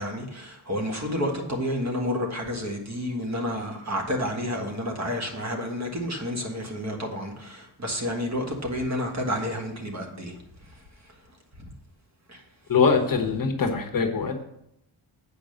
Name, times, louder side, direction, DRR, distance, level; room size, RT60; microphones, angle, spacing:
voice 1, 0.0-10.3 12.3-12.4, equal, 35° right, 2 dB, 1.6 m, -30 dB
voice 2, 12.7-14.4, left 5 dB, 45° left, 3 dB, 1.1 m, -23 dB
8.5 x 5.0 x 6.5 m, 0.76 s
wide cardioid pair, 150°, 48 cm